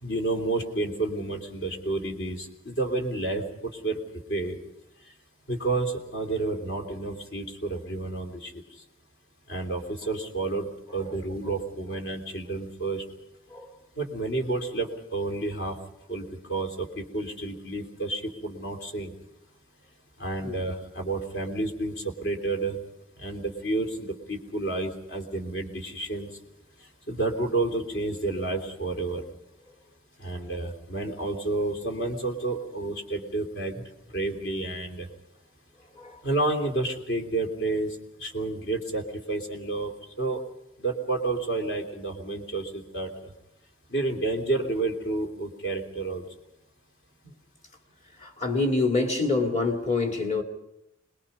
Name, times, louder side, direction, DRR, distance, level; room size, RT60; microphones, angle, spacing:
voice 1, 0.0-4.0 4.3-4.6 5.5-8.6 9.5-13.0 14.0-15.8 16.1-19.1 20.2-22.7 23.2-26.3 27.1-29.2 30.2-33.7 34.1-35.1 36.2-39.9 40.2-40.4 40.8-43.3 43.9-46.2, right 2 dB, 55° left, 3.2 m, -30 dB
voice 2, 48.2-50.4, left 3 dB, 35° left, 2.5 m, -26 dB
26.0 x 21.0 x 5.5 m
head